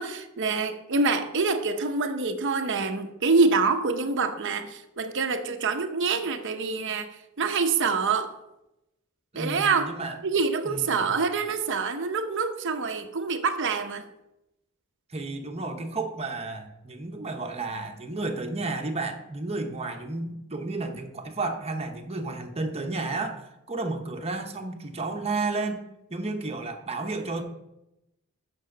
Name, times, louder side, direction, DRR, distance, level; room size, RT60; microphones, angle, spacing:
voice 1, 0.0-7.1 7.4-8.3 9.3-9.9 10.2-14.0, right 4 dB, 60° right, 7 dB, 0.8 m, -26 dB
voice 2, 9.3-10.2 10.6-11.1 15.1-27.4, right 3 dB, 30° right, 4 dB, 1.0 m, -32 dB
8.5 x 6.3 x 5.1 m, 0.88 s
head